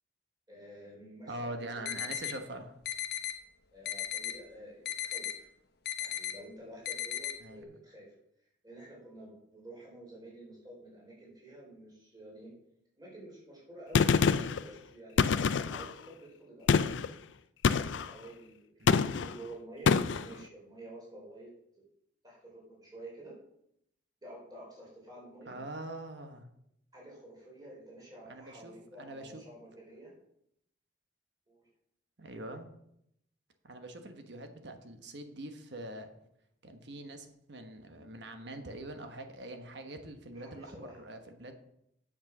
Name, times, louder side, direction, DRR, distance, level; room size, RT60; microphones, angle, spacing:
voice 1, 0.5-2.2 3.7-5.5 6.0-8.1 8.6-12.5 13.0-17.1 17.7-18.7 18.9-21.5 22.2-23.3 24.2-25.6 26.9-30.1 31.5-31.7 40.3-41.0, right 1 dB, 20° right, -5 dB, 4.7 m, -50 dB
voice 2, 1.3-2.8 7.4-7.7 18.8-19.2 25.5-26.5 28.3-29.4 32.2-32.7 33.6-36.1 36.6-41.5, right 1 dB, 60° right, 6 dB, 1.2 m, -44 dB
sound 1, 1.9-2.3 2.9-3.3 3.9-4.3 4.9-5.3 5.9-6.3 6.9-7.3, left 11 dB, 55° left, 1.0 m, -35 dB
Gunshot gunfire, 13.9-14.6 15.2-15.9 16.7-17.1 17.6-18.1 18.9-19.4 19.9-20.3, left 5 dB, 70° left, 0.4 m, -26 dB
8.9 x 7.4 x 6.1 m, 0.76 s
head